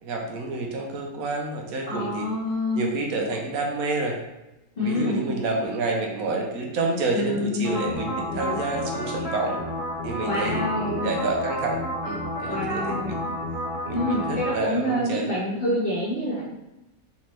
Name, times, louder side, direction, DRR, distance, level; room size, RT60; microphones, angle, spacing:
voice 1, 0.0-2.3 2.7-4.2 4.8-9.6 10.0-13.3 13.8-15.3, right 3 dB, 75° right, 1 dB, 1.1 m, -29 dB
voice 2, 1.9-2.8 4.7-5.2 7.1-7.8 8.3-8.6 10.2-11.1 12.5-13.1 13.9-16.4, left 1 dB, 40° left, -7 dB, 1.3 m, -27 dB
sound 1, 7.6-14.5, equal, ahead, 0.6 m, -31 dB
3.3 x 2.9 x 3.1 m, 0.94 s
omnidirectional pair, 1.5 m